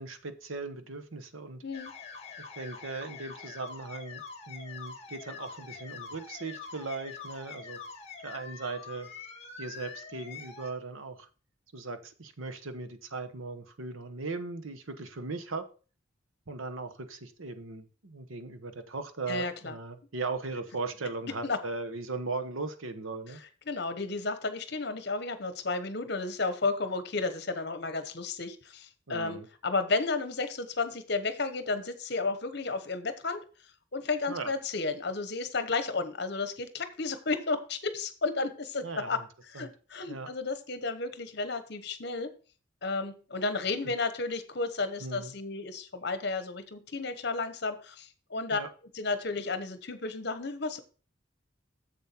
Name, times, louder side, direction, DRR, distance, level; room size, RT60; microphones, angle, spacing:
voice 1, 0.0-1.6 2.6-7.8 8.2-9.1 9.6-11.3 11.7-15.6 16.5-23.4 29.1-29.5 34.3-34.5 38.8-39.2 39.5-39.7 40.1-40.3 45.0-45.3 48.5-48.7, right 3 dB, 90° right, 9 dB, 1.1 m, -38 dB
sound 1, 1.7-10.7, left 5 dB, 35° left, 1.4 m, -45 dB
voice 2, 19.3-19.8 21.4-21.6 23.3-33.4 33.9-42.3 42.8-48.6 48.9-50.8, left 3 dB, 55° left, 10 dB, 1.0 m, -33 dB
7.4 x 7.1 x 4.4 m, 0.37 s
head